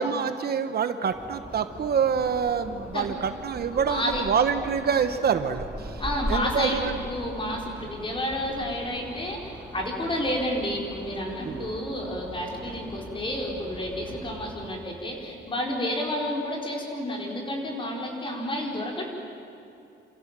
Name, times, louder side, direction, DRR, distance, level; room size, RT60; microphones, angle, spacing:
voice 1, 0.0-6.0 6.3-7.0 11.4-11.7, right 7 dB, 55° right, 9 dB, 1.2 m, -26 dB
sound 1, 1.1-14.7, equal, 5° right, 2.8 m, -40 dB
voice 2, 3.7-4.2 6.0-19.1, left 1 dB, 25° left, 0 dB, 5.0 m, -30 dB
28.5 x 27.5 x 7.6 m, 2.8 s
wide cardioid pair, 170°, 20 cm